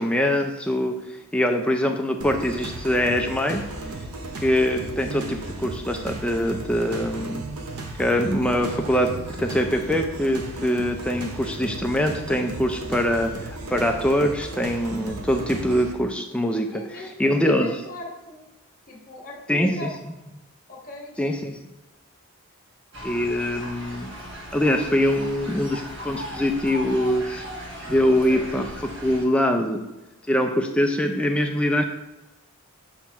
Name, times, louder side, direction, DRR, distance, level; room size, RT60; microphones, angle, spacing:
voice 1, 0.0-3.6 4.4-7.4 8.0-9.1 9.4-16.8 17.2-17.8 19.5-19.9 21.2-21.6 23.0-24.1 24.5-27.4 27.8-29.9 30.3-31.8, equal, 5° left, 4 dB, 0.4 m, -23 dB
sound 1, 2.2-15.9, right 2 dB, 80° right, 0.8 m, -35 dB
voice 2, 16.7-18.4 18.9-19.9 20.7-21.1, left 1 dB, 35° left, -3 dB, 1.3 m, -39 dB
sound 2, 22.9-29.2, equal, 55° right, 1.3 m, -37 dB
7.3 x 3.1 x 4.6 m, 1.0 s
head